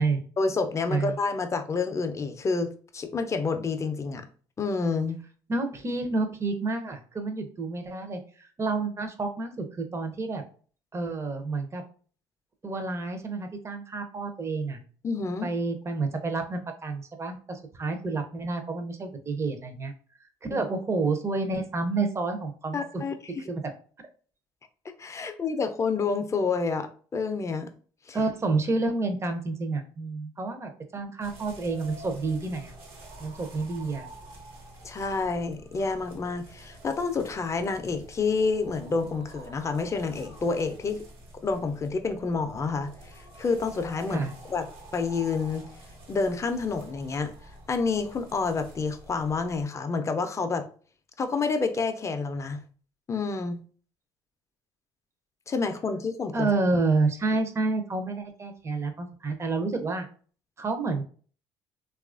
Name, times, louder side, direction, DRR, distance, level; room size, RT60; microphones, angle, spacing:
voice 1, 0.4-4.2 4.6-5.2 15.0-15.5 20.5-20.6 22.7-23.1 25.0-26.9 27.1-27.7 28.1-28.2 34.8-41.0 41.4-44.7 44.9-45.7 46.1-47.3 47.7-50.7 51.2-52.6 53.1-53.6 55.5-56.5, left 4 dB, 30° left, 7 dB, 0.5 m, -28 dB
voice 2, 5.5-10.4 10.9-11.8 12.6-14.8 15.4-19.9 20.5-22.8 23.5-23.6 28.1-32.7 33.2-34.1 44.1-44.3 56.3-60.1 60.6-61.0, right 3 dB, 30° right, 6 dB, 0.6 m, -29 dB
sound 1, 31.2-49.7, right 1 dB, 65° right, 1.0 m, -48 dB
2.9 x 2.4 x 2.4 m, 0.42 s
supercardioid pair, 75°, 10 cm